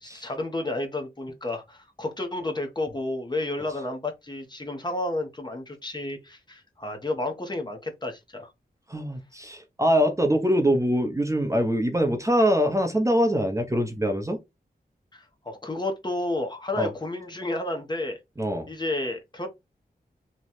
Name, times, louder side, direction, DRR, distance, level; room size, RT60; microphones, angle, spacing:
voice 1, 0.0-8.5 15.1-18.2 18.7-19.5, left 2 dB, 25° left, 0.9 m, -31 dB
voice 2, 8.9-14.4 16.8-16.9 18.4-18.7, equal, 20° right, 0.8 m, -23 dB
3.1 x 2.3 x 4.2 m
wide cardioid pair, 70°, 16 cm